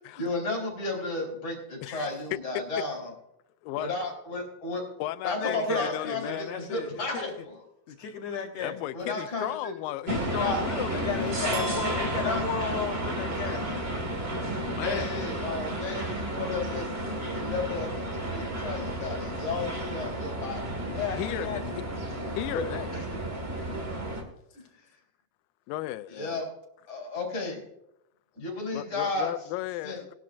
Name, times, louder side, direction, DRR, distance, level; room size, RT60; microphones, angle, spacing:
voice 1, 0.2-3.1 3.7-4.8 5.2-7.6 8.9-9.7 10.2-10.6 12.1-12.4 14.8-20.7 23.3-23.4 24.5-24.6 26.1-26.5 26.9-27.6 28.4-29.3 29.8-30.0, left 3 dB, 30° left, 4.1 m, -33 dB
voice 2, 1.8-2.6 3.6-3.9 5.0-6.4 8.6-11.2 14.8-15.1 21.2-21.8 22.4-22.9 25.7-26.5 28.7-30.1, left 15 dB, 90° left, 2.3 m, -35 dB
voice 3, 5.4-7.3 7.9-8.8 10.9-13.7 20.9-21.6 22.5-22.8, left 6 dB, 70° left, 1.7 m, -34 dB
sound 1, 10.1-24.2, right 1 dB, 35° right, 1.0 m, -32 dB
sound 2, 11.5-13.7, right 2 dB, 85° right, 5.8 m, -39 dB
19.0 x 11.5 x 2.5 m
omnidirectional pair, 4.0 m